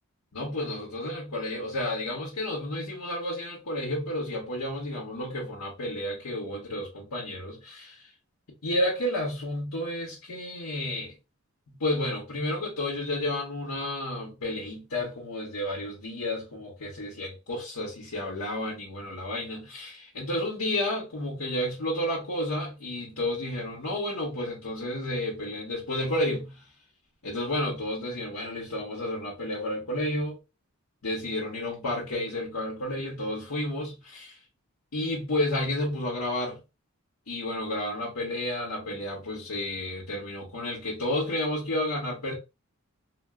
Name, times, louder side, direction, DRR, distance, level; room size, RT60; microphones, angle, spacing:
voice 1, 0.3-8.1 8.6-11.1 11.7-26.6 27.2-30.4 31.0-34.4 34.9-36.6 37.3-42.3, left 1 dB, 90° left, 1.0 m, -31 dB
3.0 x 2.1 x 2.3 m
head